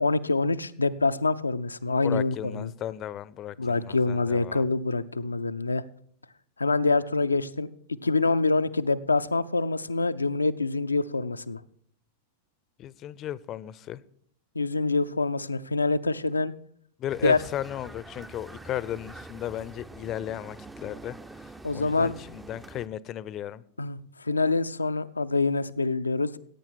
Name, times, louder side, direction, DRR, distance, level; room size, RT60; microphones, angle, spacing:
voice 1, 0.0-2.7 3.6-5.8 6.6-7.7 8.0-11.6 14.6-16.5 17.2-17.4 21.6-22.1 23.8-26.4, left 3 dB, 80° left, 0.5 m, -25 dB
voice 2, 1.9-4.6 12.8-14.0 17.0-21.2 21.4-23.6, left 11 dB, 30° left, 0.6 m, -35 dB
sound 1, 17.1-22.9, right 2 dB, 10° right, 0.6 m, -45 dB
15.5 x 8.9 x 4.4 m
figure-of-eight pair, 90°, 0 cm